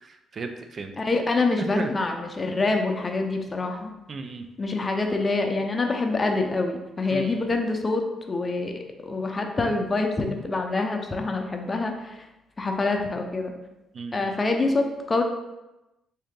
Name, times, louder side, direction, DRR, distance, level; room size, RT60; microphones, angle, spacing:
voice 1, 0.0-0.9 1.8-1.9 4.1-4.4 7.1-7.5 13.9-14.4, right 4 dB, 45° right, 6 dB, 0.4 m, -34 dB
voice 2, 1.0-3.9 4.6-8.7 9.0-12.2 12.6-13.5 14.1-15.2, left 3 dB, 30° left, 3 dB, 0.6 m, -26 dB
3.7 x 2.7 x 3.6 m, 0.98 s
cardioid pair, 90°, 0 cm